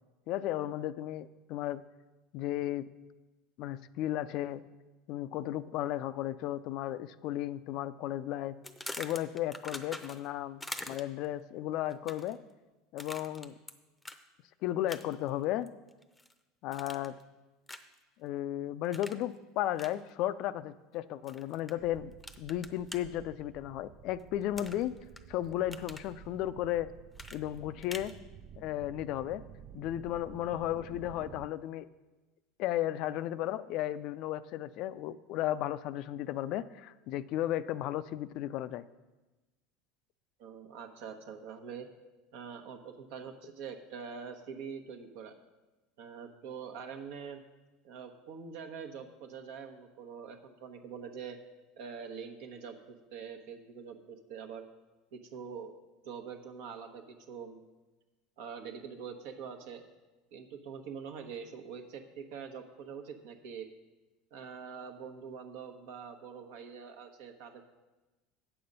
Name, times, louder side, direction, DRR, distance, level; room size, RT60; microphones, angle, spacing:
voice 1, 0.3-1.8 2.3-2.9 3.6-4.6 5.1-8.6 9.0-10.6 10.9-12.4 12.9-13.5 14.6-15.7 16.6-17.2 18.2-22.1 22.4-25.0 25.3-26.9 27.3-28.2 28.6-29.4 29.7-31.9 32.6-38.8, left 13 dB, 60° left, 15 dB, 0.3 m, -34 dB
sound 1, 8.6-10.3 10.6-11.3 11.9-12.4 13.0-13.7 14.0-14.2 14.9-15.3 15.7-16.3 16.7-17.2 17.7-18.0 18.9-19.2 19.8-19.9 21.3-21.7 22.2-23.0 24.6-25.2 25.5-26.1 27.2-28.1, left 2 dB, 10° left, 0.6 m, -44 dB
sound 2, 21.8-31.5, right 9 dB, 50° right, 0.3 m, -52 dB
voice 2, 40.4-41.9 42.3-45.4 46.0-47.4 47.8-51.4 51.8-54.7 55.1-55.7 56.0-57.7 58.4-59.8 60.3-63.7 64.3-67.6, right 6 dB, 70° right, 5 dB, 1.0 m, -44 dB
8.7 x 6.9 x 5.3 m, 1.1 s
supercardioid pair, 100°, 0 cm